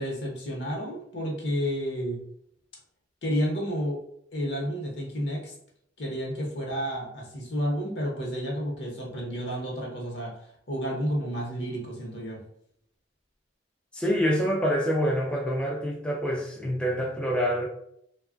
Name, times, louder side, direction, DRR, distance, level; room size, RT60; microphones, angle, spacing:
voice 1, 0.0-2.2 3.2-4.0 4.3-5.5 6.0-10.3 10.7-12.4, equal, 70° left, -2 dB, 0.9 m, -31 dB
voice 2, 13.9-17.7, equal, 5° left, -2 dB, 0.3 m, -26 dB
2.9 x 2.3 x 2.4 m, 0.71 s
head